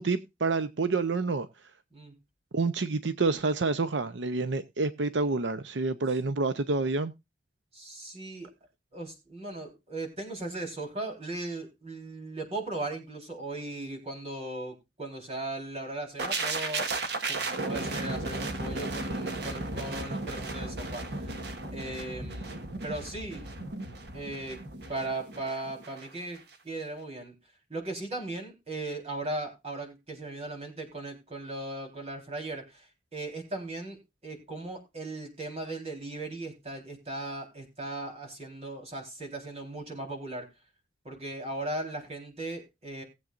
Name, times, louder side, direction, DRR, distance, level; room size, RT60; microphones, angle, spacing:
voice 1, 0.0-1.5 2.5-7.1, right 3 dB, 85° right, 0.7 m, -28 dB
voice 2, 7.7-8.5 8.9-16.9 17.3-21.4 21.7-23.5 24.1-24.6 24.9-27.3 27.7-40.5 41.0-43.0, right 2 dB, 35° right, 4.0 m, -38 dB
sound 1, 16.2-26.1 26.3-26.5, right 2 dB, 65° right, 1.5 m, -35 dB
19.5 x 7.9 x 2.5 m
head